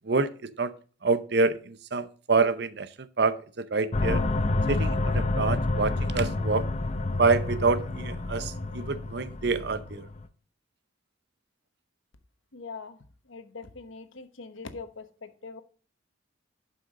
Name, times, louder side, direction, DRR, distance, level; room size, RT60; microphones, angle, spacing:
voice 1, 0.1-0.7 1.0-2.9 3.2-4.2 4.7-6.6 7.2-10.1, right 4 dB, 55° right, 14 dB, 0.7 m, -27 dB
sound 1, 3.9-10.2, left 2 dB, 35° left, 0.6 m, -28 dB
voice 2, 12.5-13.0 13.3-15.6, left 4 dB, 80° left, 10 dB, 1.1 m, -42 dB
11.5 x 5.6 x 3.7 m, 0.40 s
head